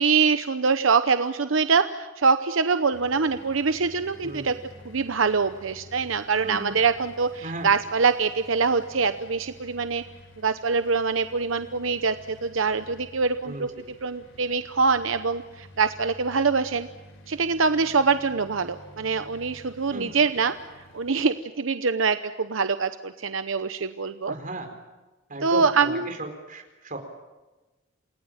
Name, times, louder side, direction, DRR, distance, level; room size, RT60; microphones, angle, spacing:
voice 1, 0.0-4.6 4.8-10.0 10.4-13.7 14.0-16.9 17.3-20.5 20.9-24.3 25.4-26.1, right 5 dB, 85° right, 10 dB, 0.9 m, -24 dB
sound 1, 2.9-21.1, left 1 dB, 80° left, 4.0 m, -50 dB
voice 2, 4.2-4.5 6.4-6.7 7.4-7.7 13.4-13.6 19.9-20.2 24.3-24.7 25.3-27.0, right 1 dB, 45° right, 4 dB, 4.5 m, -35 dB
28.5 x 19.0 x 8.9 m, 1.2 s
head